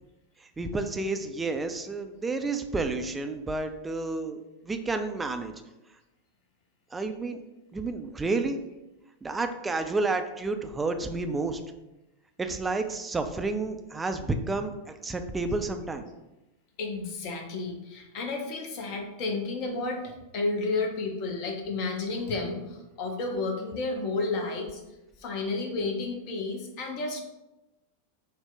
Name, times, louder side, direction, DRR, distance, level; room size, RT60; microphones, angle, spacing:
voice 1, 0.4-4.4 4.6-5.5 6.9-7.4 7.7-8.6 9.2-11.6 12.4-16.0, right 3 dB, 15° right, 7 dB, 0.3 m, -30 dB
voice 2, 16.8-24.8 25.2-27.2, left 3 dB, 40° left, 2 dB, 0.7 m, -31 dB
4.5 x 2.0 x 3.8 m, 0.98 s
figure-of-eight pair, 90°, 0 cm